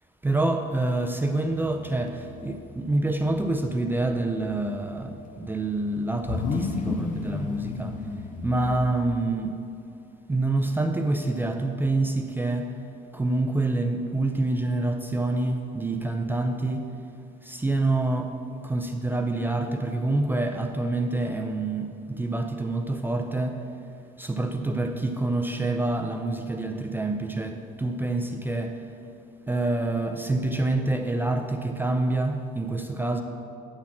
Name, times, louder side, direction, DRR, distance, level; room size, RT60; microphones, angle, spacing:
voice 1, 0.2-8.0 8.4-9.6 10.3-12.8 13.1-16.9 17.4-18.4 18.6-23.6 24.2-28.8 29.5-33.2, right 2 dB, 10° right, 4 dB, 0.4 m, -27 dB
sound 1, 1.5-9.2, left 4 dB, 50° left, 0.6 m, -34 dB
8.7 x 4.1 x 7.1 m, 2.6 s
cardioid pair, 110°, 17 cm